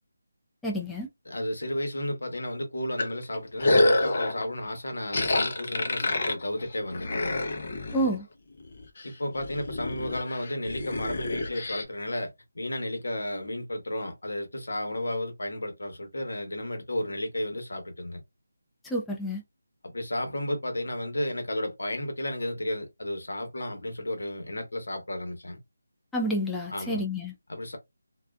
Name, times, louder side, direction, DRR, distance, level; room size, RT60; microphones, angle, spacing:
voice 1, 0.6-1.1 7.9-8.2 18.8-19.4 26.1-27.3, equal, 5° left, 0.3 m, -29 dB
voice 2, 1.3-7.4 9.0-18.2 19.9-25.6 26.7-27.0 27.5-27.8, left 1 dB, 80° left, 1.0 m, -33 dB
sound 1, 3.0-4.4 5.1-8.2 8.6-9.0 9.4-11.8, left 2 dB, 45° left, 0.6 m, -27 dB
2.3 x 2.3 x 2.3 m
figure-of-eight pair, 165°, 0 cm